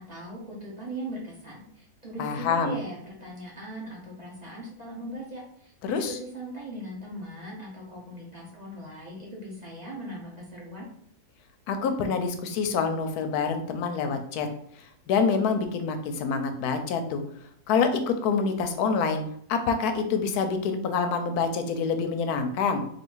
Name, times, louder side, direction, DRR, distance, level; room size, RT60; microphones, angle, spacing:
voice 1, 0.0-10.9, right 1 dB, 30° right, -5 dB, 0.9 m, -39 dB
voice 2, 2.2-2.8 5.8-6.1 11.7-14.5 15.1-17.2 17.7-19.2 19.5-22.8, left 5 dB, 80° left, 7 dB, 1.1 m, -26 dB
3.2 x 2.7 x 4.5 m, 0.67 s
omnidirectional pair, 1.7 m